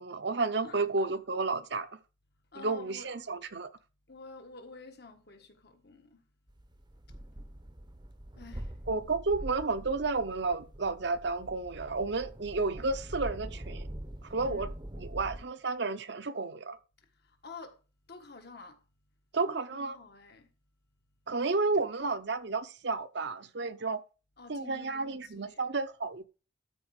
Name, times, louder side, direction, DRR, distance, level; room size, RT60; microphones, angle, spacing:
voice 1, 0.0-2.0 2.6-3.7 8.9-13.9 14.2-14.7 15.0-16.8 19.3-20.0 21.3-24.0 24.5-26.2, right 3 dB, 60° right, 0.8 m, -32 dB
voice 2, 0.6-1.1 2.5-3.1 4.1-6.2 8.4-8.7 14.4-14.7 17.4-17.8 18.1-18.8 19.4-20.5 21.8-22.1 24.4-25.6, left 3 dB, 55° left, 1.5 m, -49 dB
sound 1, 6.5-15.4, right 1 dB, 25° right, 0.8 m, -44 dB
13.0 x 4.6 x 4.9 m
head